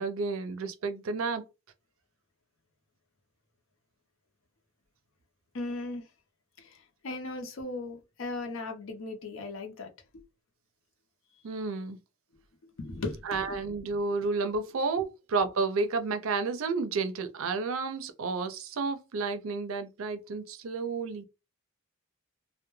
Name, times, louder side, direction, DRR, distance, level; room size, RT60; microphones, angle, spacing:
voice 1, 0.0-1.5 11.4-12.0 13.2-21.2, right 4 dB, 75° right, 0.5 m, -31 dB
voice 2, 5.5-6.0 6.6-9.9 12.8-13.2, left 2 dB, 70° left, 0.6 m, -37 dB
2.2 x 2.1 x 3.0 m
head